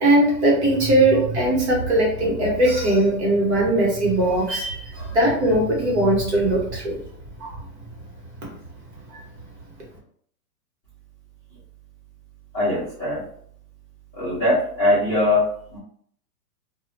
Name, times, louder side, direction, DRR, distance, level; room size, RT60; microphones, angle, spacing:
voice 1, 0.0-7.0 7.4-7.5, right 1 dB, 40° right, -3 dB, 1.2 m, -20 dB
voice 2, 12.5-13.2 14.1-15.8, left 1 dB, 5° left, -20 dB, 0.5 m, -21 dB
2.7 x 2.3 x 3.1 m, 0.63 s
hypercardioid pair, 170°, 49 cm